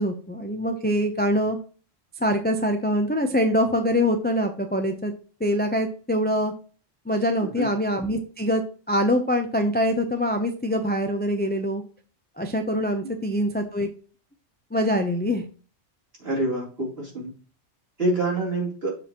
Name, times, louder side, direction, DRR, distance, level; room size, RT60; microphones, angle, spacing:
voice 1, 0.0-1.6 2.2-5.1 5.4-6.5 7.1-8.6 8.9-11.8 12.4-13.9 14.7-15.4, equal, 10° left, 5 dB, 0.6 m, -24 dB
voice 2, 16.2-17.3 18.0-18.9, right 2 dB, 50° right, -4 dB, 4.1 m, -26 dB
7.1 x 6.9 x 3.0 m, 0.38 s
omnidirectional pair, 1.3 m